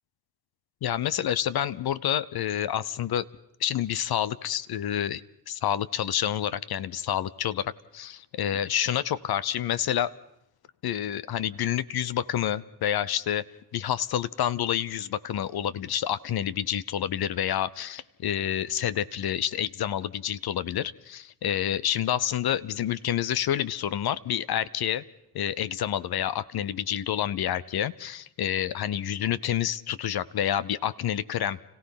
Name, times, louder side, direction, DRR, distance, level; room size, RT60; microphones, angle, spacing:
voice 1, 0.8-3.3 3.6-5.2 5.5-10.1 10.8-13.4 13.7-25.0 25.3-31.6, left 10 dB, 60° left, 17 dB, 0.8 m, -28 dB
30.0 x 15.5 x 5.8 m, 0.79 s
supercardioid pair, 55°, 42 cm